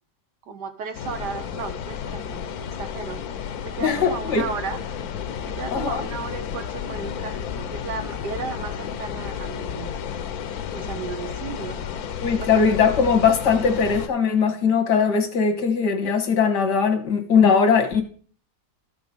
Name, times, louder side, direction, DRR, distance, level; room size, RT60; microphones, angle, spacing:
voice 1, 0.5-2.5 2.8-3.2 3.6-4.8 5.6-10.0 10.7-11.9 12.4-12.8, right 5 dB, 85° right, 1.7 m, -34 dB
sound 1, 0.9-14.1, left 8 dB, 70° left, 1.2 m, -32 dB
voice 2, 3.8-4.4 5.7-6.0 12.2-18.0, left 6 dB, 85° left, 2.1 m, -20 dB
13.0 x 5.9 x 5.3 m
omnidirectional pair, 1.8 m